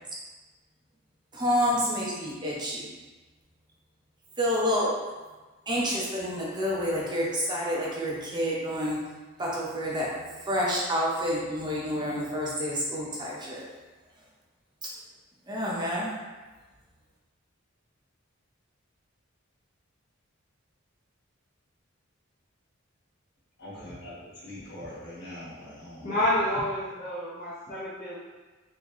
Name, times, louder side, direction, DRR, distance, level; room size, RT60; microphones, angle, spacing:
voice 1, 1.3-2.9 4.4-5.0 5.7-9.0 9.4-10.1 10.4-13.7 15.5-16.1, equal, 20° right, -5 dB, 0.6 m, -28 dB
voice 2, 23.6-26.2, left 1 dB, 55° left, -8 dB, 1.2 m, -42 dB
voice 3, 26.0-28.2, left 1 dB, 40° left, -9 dB, 0.7 m, -29 dB
3.6 x 2.7 x 3.0 m, 1.2 s
head